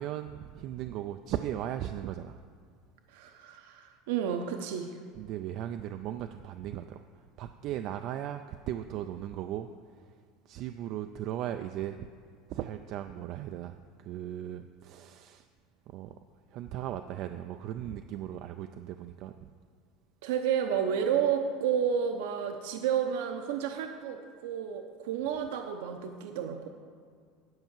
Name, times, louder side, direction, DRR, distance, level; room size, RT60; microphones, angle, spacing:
voice 1, 0.0-2.4 5.2-7.0 7.4-9.7 10.5-12.1 12.5-15.4 15.9-16.1 16.5-19.3, right 11 dB, 40° right, 8 dB, 0.3 m, -37 dB
voice 2, 3.1-5.0 20.2-26.7, right 8 dB, 70° right, 5 dB, 0.7 m, -31 dB
10.5 x 5.6 x 7.3 m, 2.1 s
cardioid pair, 180°, 0 cm